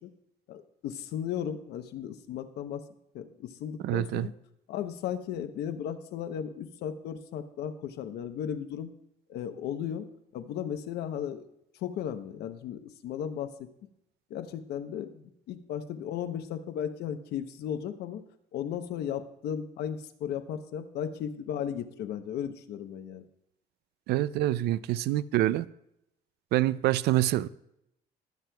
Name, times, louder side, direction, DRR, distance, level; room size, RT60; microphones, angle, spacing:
voice 1, 0.5-2.9 3.1-4.3 4.7-8.9 9.3-10.1 10.3-11.5 11.7-13.7 14.3-18.2 18.5-23.3, left 9 dB, 75° left, 0.9 m, -35 dB
voice 2, 3.8-4.3 24.1-25.7 26.5-27.5, right 14 dB, 75° right, 0.4 m, -26 dB
20.0 x 7.5 x 2.3 m
cardioid pair, 110°, 17 cm